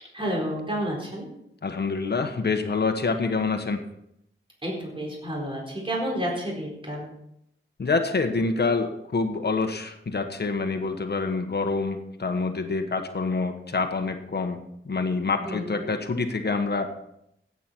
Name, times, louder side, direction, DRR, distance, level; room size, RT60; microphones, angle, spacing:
voice 1, 0.1-1.3 4.6-7.1 15.4-15.9, equal, 25° right, -2 dB, 4.3 m, -30 dB
voice 2, 1.6-3.8 7.8-14.6 14.8-17.0, left 4 dB, 55° left, 6 dB, 1.3 m, -26 dB
16.5 x 8.4 x 4.5 m, 0.78 s
wide cardioid pair, 100°, 21 cm